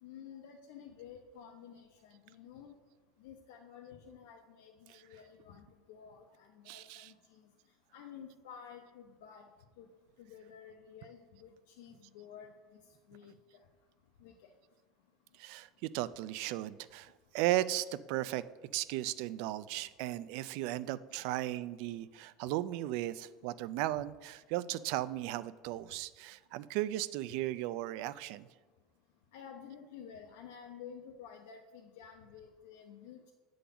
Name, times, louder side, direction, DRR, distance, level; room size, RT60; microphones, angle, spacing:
voice 1, 0.0-2.8 3.2-7.5 7.9-9.5 9.8-9.9 10.2-12.8 13.1-13.6 14.2-14.5 29.3-33.3, left 8 dB, 85° left, 1 dB, 0.8 m, -52 dB
voice 2, 6.7-7.1 15.4-18.4 18.7-28.5, right 15 dB, 60° right, 16 dB, 0.3 m, -36 dB
8.4 x 3.8 x 6.9 m, 1.3 s
cardioid pair, 165°, 0 cm